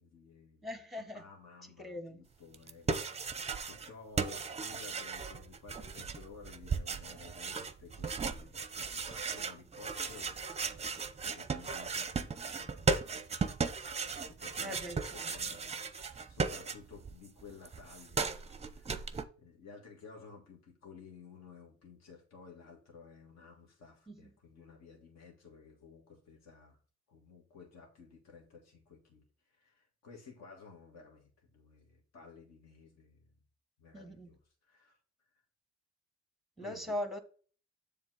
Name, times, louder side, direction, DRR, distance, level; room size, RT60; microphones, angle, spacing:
voice 1, 0.0-3.3 3.7-15.8 16.3-26.8 27.1-33.2 33.8-35.0 36.6-37.0, left 5 dB, 60° left, 2.0 m, -55 dB
voice 2, 0.6-1.2 1.8-2.2 14.6-15.3 24.1-24.2 33.9-34.3 36.6-37.2, left 1 dB, ahead, 1.2 m, -40 dB
sound 1, 2.5-17.1 17.4-19.2, right 5 dB, 20° right, 0.6 m, -36 dB
7.2 x 3.6 x 4.8 m
cardioid pair, 90°, 30 cm